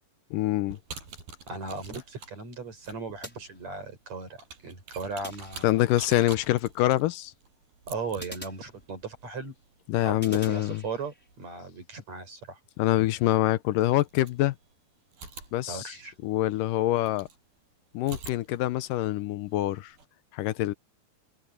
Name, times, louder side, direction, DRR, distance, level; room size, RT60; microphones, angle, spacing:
voice 1, 0.3-0.8 5.6-7.3 9.9-10.8 12.8-14.6 15.5-15.9 16.2-17.3 17.9-19.9 20.3-20.7, left 15 dB, 75° left, 2.2 m, -25 dB
sound 1, 0.7-11.5 13.0-13.1 13.8-14.7 15.1-17.4 18.0-20.0, right 4 dB, 80° right, 9.5 m, -48 dB
voice 2, 1.5-5.8 7.9-9.5 10.0-12.6 15.7-16.1, right 4 dB, 45° right, 7.3 m, -37 dB
sound 2, 3.2-4.1 5.2-6.1 8.2-9.3 10.2-11.3, equal, 5° left, 4.4 m, -47 dB
open air
omnidirectional pair, 4.2 m